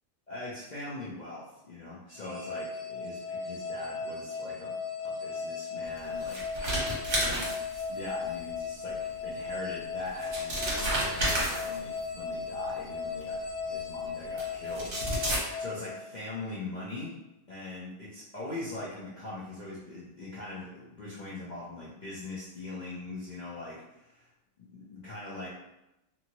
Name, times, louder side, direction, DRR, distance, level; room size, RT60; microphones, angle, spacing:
voice 1, 0.3-4.7 5.0-6.8 7.1-7.5 7.9-13.4 13.6-17.1 17.5-24.3 24.6-25.5, left 2 dB, 50° left, -8 dB, 0.6 m, -41 dB
sound 1, 2.1-16.5, left 5 dB, 70° left, 1.2 m, -36 dB
sound 2, 6.0-8.1 9.5-9.6 10.1-12.0 13.2-13.3 14.4-14.5 14.7-15.4, right 1 dB, 45° right, 1.0 m, -31 dB
2.7 x 2.6 x 2.8 m, 0.89 s
omnidirectional pair, 1.4 m